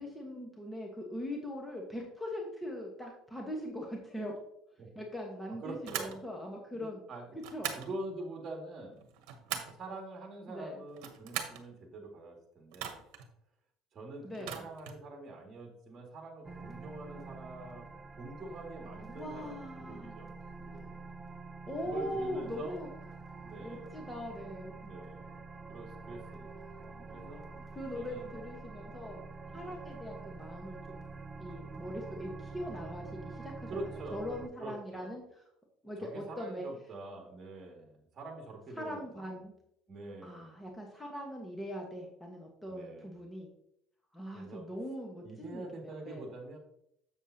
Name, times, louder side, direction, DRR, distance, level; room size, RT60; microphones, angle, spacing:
voice 1, 0.0-4.3 4.9-7.0 7.3-7.8 10.5-10.8 14.2-14.6 19.1-20.3 21.7-22.9 23.6-24.8 26.8-29.2 29.5-31.0 31.4-33.7 34.1-35.4 35.8-36.6 38.8-39.5 40.2-43.5 44.1-46.2, equal, 5° left, 0 dB, 1.3 m, -41 dB
voice 2, 5.6-6.2 6.7-7.3 7.7-9.0 9.7-13.0 13.9-17.9 18.2-21.0 21.8-22.8 23.4-23.9 24.8-25.4 25.7-27.5 27.9-28.3 29.5-29.9 33.7-34.2 34.6-35.1 36.0-39.4 39.9-40.6 42.7-43.1 44.3-44.6 45.2-46.6, right 2 dB, 35° right, 1 dB, 2.2 m, -45 dB
sound 1, 5.8-6.2 7.4-7.9 9.0-9.8 10.9-11.6 12.7-13.3 14.3-15.0, right 9 dB, 80° right, 1.0 m, -40 dB
sound 2, 16.4-34.5, right 4 dB, 15° right, 0.5 m, -47 dB
7.3 x 7.1 x 2.8 m, 0.74 s
cardioid pair, 125°, 0 cm